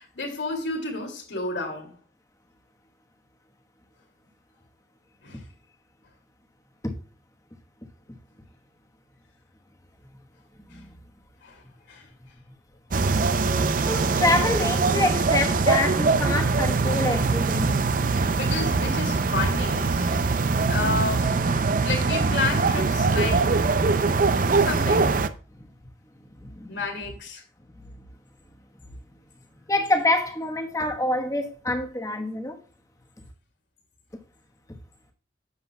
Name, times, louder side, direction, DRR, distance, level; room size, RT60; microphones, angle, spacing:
voice 1, 0.0-1.9 5.2-5.5 10.7-10.8 11.4-12.1 18.4-20.3 20.7-23.8 24.6-25.1 26.7-27.4, left 3 dB, 70° left, 2.5 m, -31 dB
sound 1, 12.9-25.3, right 4 dB, 45° right, 0.5 m, -22 dB
voice 2, 13.8-17.8 26.4-26.8 29.7-32.6, left 2 dB, 15° left, 1.1 m, -26 dB
9.9 x 7.8 x 2.3 m
head